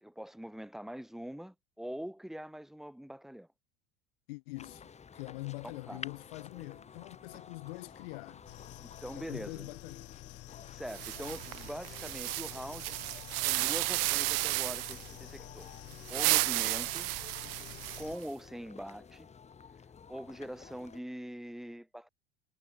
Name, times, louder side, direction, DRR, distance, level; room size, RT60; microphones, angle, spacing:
voice 1, 0.0-3.5 5.9-6.0 8.8-9.7 10.7-13.0 13.4-15.7 16.1-17.1 18.0-19.3 20.1-22.1, equal, ahead, 1.8 m, -43 dB
voice 2, 4.3-8.5 9.2-10.1, left 23 dB, 70° left, 1.5 m, -44 dB
sound 1, 4.6-21.0, left 6 dB, 20° left, 1.2 m, -52 dB
sound 2, 8.5-18.2, left 18 dB, 50° left, 1.9 m, -50 dB
sound 3, 10.9-15.1 15.9-18.2, right 28 dB, 55° right, 0.9 m, -33 dB
hypercardioid pair, 80°, 31 cm